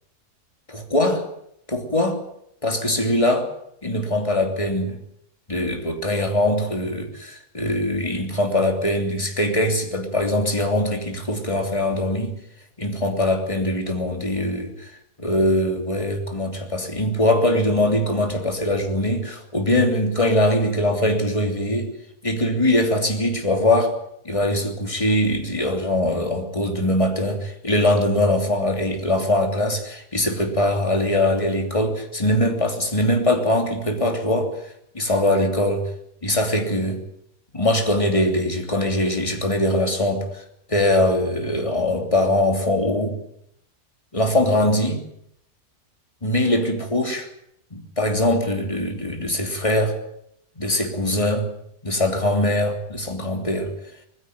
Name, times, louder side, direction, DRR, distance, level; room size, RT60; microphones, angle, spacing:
voice 1, 0.7-1.2 1.7-2.2 2.6-3.5 3.8-5.0 5.5-12.4 12.8-14.9 15.2-21.9 22.2-24.0 24.2-34.5 34.9-35.8 36.2-37.0 37.5-40.4 40.7-43.2 44.1-45.0 46.2-47.3 47.7-50.0 50.6-51.5 51.8-53.7, left 1 dB, 20° left, 3 dB, 3.1 m, -22 dB
20.5 x 15.5 x 9.5 m, 0.74 s
omnidirectional pair, 1.6 m